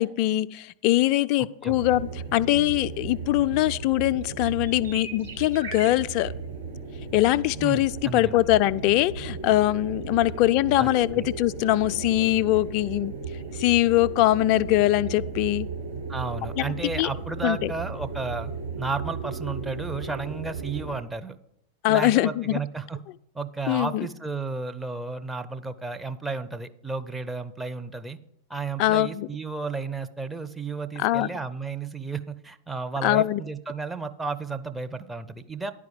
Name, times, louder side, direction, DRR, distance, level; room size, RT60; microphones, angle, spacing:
voice 1, 0.0-6.3 7.1-13.1 13.5-15.7 16.6-17.1 17.4-17.7 21.8-22.6 23.7-24.1 28.8-29.3 31.0-31.3 33.0-33.4, left 15 dB, 45° left, 16 dB, 0.3 m, -22 dB
sound 1, 1.7-21.0, right 4 dB, 75° right, 1.9 m, -36 dB
voice 2, 7.6-8.4 10.8-11.3 16.1-18.5 18.8-21.4 21.9-23.0 23.3-28.2 28.5-35.7, right 4 dB, 5° right, 7 dB, 0.6 m, -33 dB
10.5 x 4.8 x 7.6 m, 0.78 s
figure-of-eight pair, 90°, 0 cm